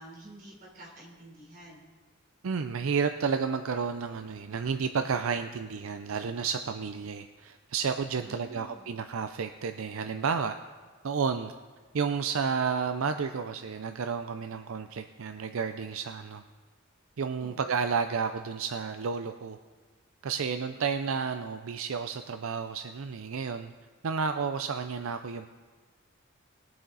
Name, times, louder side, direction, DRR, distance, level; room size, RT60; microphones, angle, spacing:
voice 1, 0.0-1.8 8.2-8.9 17.4-17.6, right 1 dB, 40° right, -3 dB, 3.7 m, -49 dB
voice 2, 2.4-10.6 11.0-11.5 11.9-16.4 17.2-19.6 20.2-23.7 24.0-25.5, right 5 dB, 80° right, 8 dB, 0.5 m, -31 dB
21.0 x 7.6 x 4.0 m, 1.5 s
head